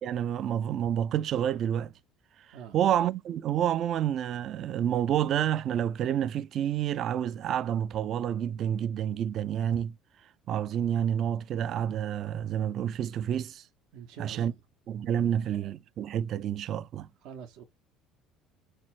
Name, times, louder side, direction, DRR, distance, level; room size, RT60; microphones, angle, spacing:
voice 1, 0.0-1.9 2.7-9.9 10.5-13.6 14.2-14.5 14.9-17.1, right 10 dB, 55° right, 0.3 m, -29 dB
voice 2, 13.9-14.6 15.1-15.3 17.2-17.6, right 7 dB, 75° right, 0.7 m, -45 dB
4.3 x 2.1 x 4.4 m
cardioid pair, 110°, 0 cm